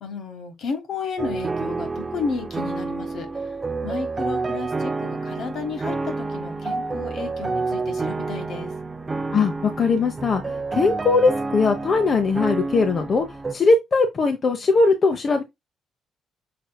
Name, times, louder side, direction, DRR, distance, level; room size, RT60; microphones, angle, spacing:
voice 1, 0.0-3.5 3.8-8.7, left 5 dB, 70° left, 1.5 m, -32 dB
sound 1, 1.2-13.5, right 3 dB, 25° right, 0.5 m, -29 dB
voice 2, 9.3-13.2 13.5-15.4, left 4 dB, 45° left, 0.8 m, -20 dB
5.9 x 3.7 x 2.3 m
cardioid pair, 90°, 0 cm